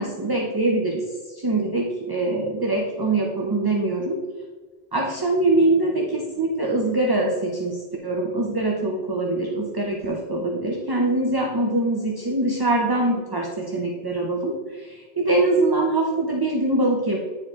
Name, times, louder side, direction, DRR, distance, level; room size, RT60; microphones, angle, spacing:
voice 1, 0.0-1.0 1.4-4.2 4.9-17.2, right 2 dB, 25° right, 0 dB, 0.6 m, -23 dB
9.3 x 4.4 x 3.6 m, 1.4 s
omnidirectional pair, 1.1 m